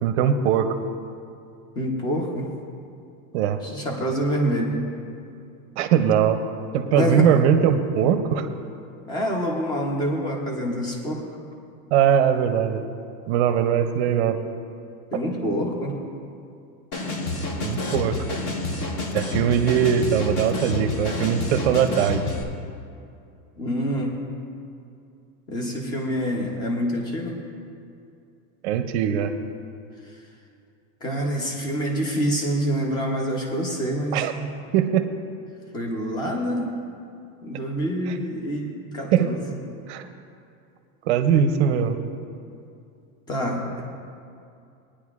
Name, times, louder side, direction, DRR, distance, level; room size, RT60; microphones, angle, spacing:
voice 1, 0.0-0.7 3.3-3.6 5.8-6.4 6.7-8.5 11.9-12.9 13.3-14.4 17.6-18.2 19.1-22.2 28.6-29.3 34.1-34.3 34.7-35.1 39.1-39.3 39.9-40.1 41.1-42.0, right 8 dB, 55° right, 9 dB, 0.6 m, -21 dB
voice 2, 1.8-2.5 3.6-4.7 6.9-7.3 9.1-11.2 15.1-16.0 23.6-24.2 25.5-27.4 31.0-34.5 35.7-36.7 37.4-39.6 43.3-43.8, equal, 10° left, 0 dB, 0.6 m, -26 dB
sound 1, 16.9-22.4, left 2 dB, 35° left, 0.8 m, -29 dB
19.0 x 9.8 x 2.4 m, 2.5 s
supercardioid pair, 180°, 40 cm